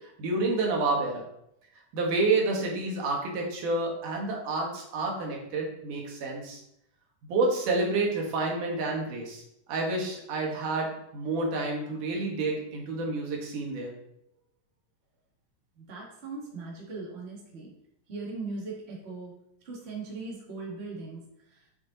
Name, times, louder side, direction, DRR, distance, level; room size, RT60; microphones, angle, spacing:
voice 1, 0.2-1.2 1.9-6.6 7.3-9.4 9.7-13.9, right 3 dB, 75° right, -1 dB, 3.1 m, -29 dB
voice 2, 15.8-17.7 18.1-19.3 19.6-21.7, right 3 dB, 25° right, -3 dB, 1.8 m, -39 dB
8.6 x 6.1 x 4.0 m, 0.78 s
omnidirectional pair, 3.7 m